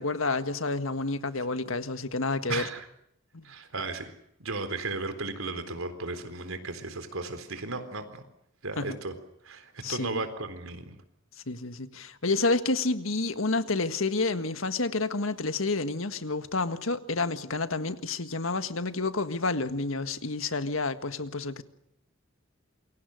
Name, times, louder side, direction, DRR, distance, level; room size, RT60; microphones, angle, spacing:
voice 1, 0.0-2.6 3.3-3.4 8.8-9.0 9.8-10.2 11.5-21.6, left 3 dB, 75° left, 1.7 m, -29 dB
voice 2, 2.5-2.9 3.4-4.1 4.4-8.2 8.6-9.1 9.4-11.0, right 3 dB, 90° right, 3.9 m, -35 dB
28.0 x 23.5 x 6.6 m
head